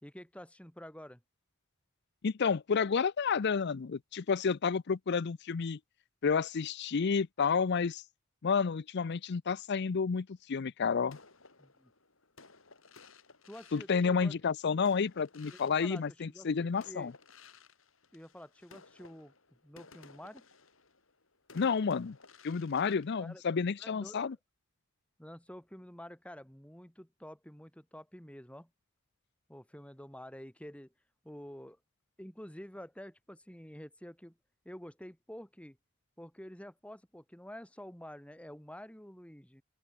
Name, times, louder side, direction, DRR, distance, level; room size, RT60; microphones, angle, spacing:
voice 1, 0.0-1.2 11.6-11.9 13.5-14.4 15.5-17.1 18.1-19.3 19.6-20.4 23.2-23.4 23.8-24.3 25.2-28.7 29.5-30.9 31.2-31.8 32.2-34.4 34.6-35.8 36.2-39.6, equal, 5° left, 3.7 m, -49 dB
voice 2, 2.2-5.8 6.2-8.0 8.4-11.2 13.7-17.1 21.5-22.2 22.4-24.4, left 5 dB, 55° left, 0.5 m, -30 dB
sound 1, 11.1-16.5 16.8-24.0, left 4 dB, 70° left, 5.3 m, -58 dB
head